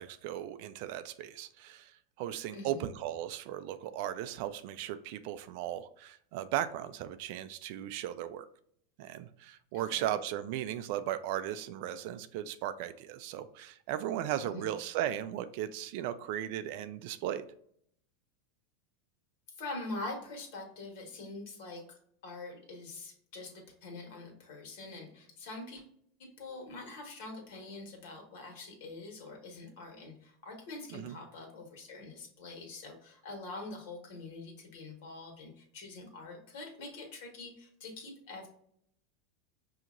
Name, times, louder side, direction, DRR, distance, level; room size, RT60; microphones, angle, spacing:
voice 1, 0.0-8.5 9.0-17.5 30.9-31.2, right 11 dB, 50° right, 12 dB, 0.3 m, -37 dB
voice 2, 2.5-2.8 9.7-10.1 14.4-14.7 19.5-21.8 22.2-25.8 26.2-38.5, left 2 dB, 60° left, 2 dB, 1.5 m, -44 dB
5.8 x 2.8 x 2.5 m, 0.66 s
supercardioid pair, 165°, 0 cm